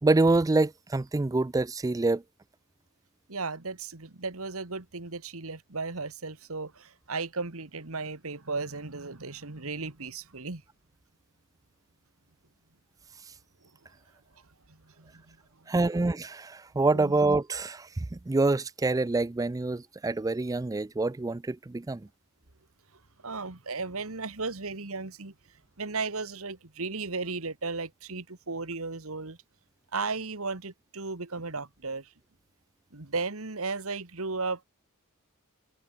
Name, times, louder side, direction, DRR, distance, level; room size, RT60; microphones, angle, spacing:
voice 1, 0.0-2.2 15.7-22.1, right 3 dB, 15° right, 0.3 m, -26 dB
voice 2, 3.3-10.6 14.7-15.4 16.9-17.2 23.2-25.3 25.8-29.4 29.9-32.1 32.9-34.6, right 4 dB, 65° right, 1.9 m, -35 dB
head